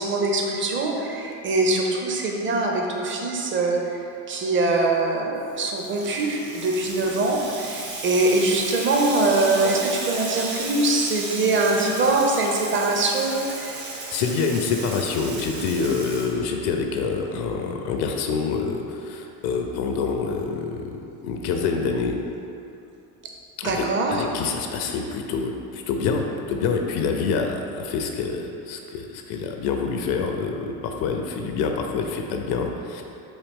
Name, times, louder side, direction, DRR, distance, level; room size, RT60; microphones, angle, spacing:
voice 1, 0.0-4.0 4.3-13.8 23.6-24.2, right 2 dB, 25° right, 0 dB, 0.6 m, -23 dB
Water tap faucet / Sink (filling or washing), 5.5-16.9, right 3 dB, 50° right, 1.0 m, -34 dB
voice 2, 14.1-21.0 21.2-22.2 23.6-33.0, left 5 dB, 55° left, 3 dB, 0.5 m, -26 dB
4.0 x 2.6 x 3.5 m, 2.7 s
hypercardioid pair, 80°, 47 cm